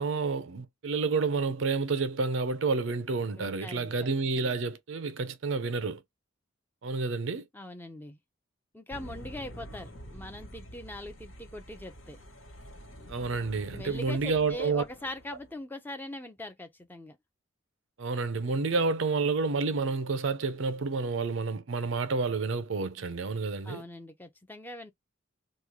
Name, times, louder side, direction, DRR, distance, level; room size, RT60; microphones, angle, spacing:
voice 1, 0.0-6.0 6.8-7.5 13.1-14.8 18.0-23.8, right 4 dB, 70° right, 0.6 m, -29 dB
voice 2, 3.4-4.1 4.3-4.5 7.5-8.2 8.7-12.2 13.7-17.2 23.6-24.9, left 1 dB, 10° left, 0.6 m, -42 dB
sound 1, 8.9-15.5, equal, 85° left, 1.6 m, -47 dB
3.0 x 2.4 x 3.5 m
head